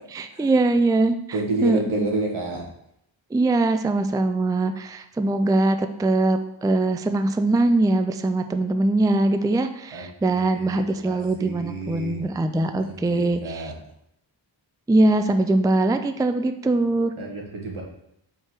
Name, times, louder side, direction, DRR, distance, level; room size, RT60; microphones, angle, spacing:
voice 1, 0.1-1.2 1.6-1.8 3.3-13.7 14.9-17.1, right 2 dB, 10° right, 8 dB, 0.4 m, -22 dB
voice 2, 1.3-2.6 9.9-12.2 12.8-13.7 17.2-17.8, right 2 dB, 80° right, -1 dB, 1.7 m, -30 dB
4.6 x 4.6 x 5.9 m, 0.76 s
wide cardioid pair, 65°, 48 cm